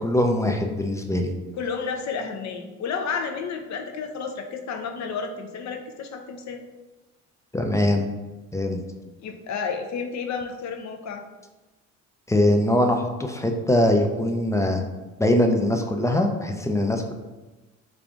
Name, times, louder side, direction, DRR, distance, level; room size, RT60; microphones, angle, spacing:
voice 1, 0.0-1.3 7.5-8.1 8.5-8.8 12.3-14.8 15.2-17.1, left 1 dB, 10° left, 3 dB, 0.4 m, -22 dB
voice 2, 1.5-6.6 9.2-11.2, left 5 dB, 45° left, 5 dB, 0.6 m, -31 dB
3.4 x 2.4 x 3.7 m, 1.2 s
hypercardioid pair, 60°, 38 cm